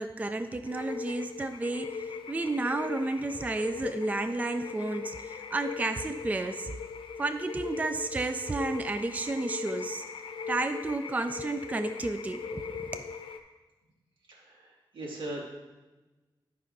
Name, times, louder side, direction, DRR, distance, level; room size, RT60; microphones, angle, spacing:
voice 1, 0.0-6.7 7.2-10.0 10.5-12.6 12.9-13.0, right 2 dB, 20° right, 9 dB, 0.3 m, -32 dB
sound 1, 0.7-13.4, left 6 dB, 90° left, 0.6 m, -39 dB
voice 2, 14.3-15.5, right 1 dB, 80° right, -3 dB, 2.0 m, -39 dB
15.0 x 5.4 x 2.6 m, 1.2 s
wide cardioid pair, 90°, 8 cm